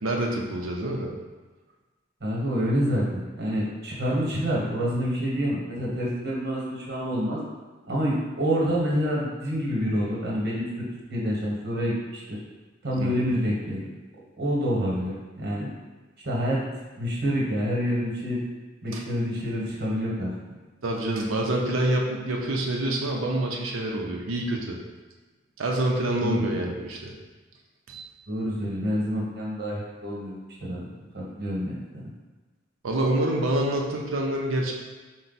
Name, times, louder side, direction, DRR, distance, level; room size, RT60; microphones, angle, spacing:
voice 1, 0.0-1.1 13.0-13.2 18.9-19.0 20.8-24.8 25.6-27.1 27.9-28.0 32.8-34.7, right 1 dB, 85° right, 0 dB, 0.6 m, -27 dB
voice 2, 2.2-7.4 7.9-10.7 11.1-12.2 12.8-13.9 14.4-15.7 16.2-16.6 17.0-18.4 18.8-20.3 26.2-26.6 28.3-30.3 30.6-30.8 31.1-32.1, equal, 55° right, -4 dB, 1.2 m, -27 dB
4.4 x 2.2 x 4.0 m, 1.3 s
head